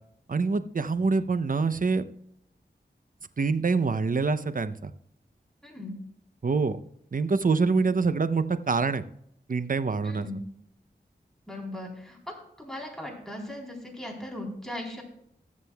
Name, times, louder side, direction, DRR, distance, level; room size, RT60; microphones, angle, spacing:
voice 1, 0.3-2.1 3.4-4.9 6.4-6.8 7.1-9.0 9.5-10.3, right 4 dB, 50° right, 12 dB, 0.6 m, -25 dB
voice 2, 5.6-6.0 7.8-7.9 10.0-10.4 11.5-15.0, left 1 dB, 5° left, -1 dB, 3.7 m, -38 dB
19.0 x 7.4 x 2.3 m, 0.73 s
wide cardioid pair, 50°, 18 cm